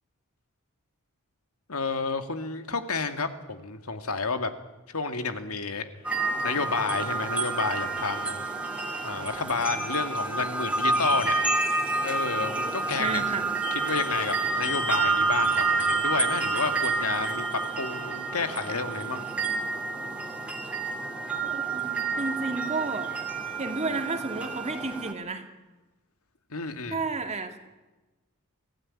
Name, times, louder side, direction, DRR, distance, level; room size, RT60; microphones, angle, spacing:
voice 1, 1.7-4.5 4.9-5.9 6.4-8.4 9.0-11.4 12.0-13.2 13.7-19.3 26.5-27.0, left 4 dB, 75° left, 8 dB, 2.2 m, -30 dB
sound 1, 6.0-25.1, right 3 dB, 5° right, 2.6 m, -29 dB
voice 2, 13.0-13.4 21.4-23.1 23.6-25.4 26.9-27.6, right 3 dB, 30° right, 6 dB, 2.2 m, -32 dB
25.5 x 16.5 x 9.8 m, 1.1 s
head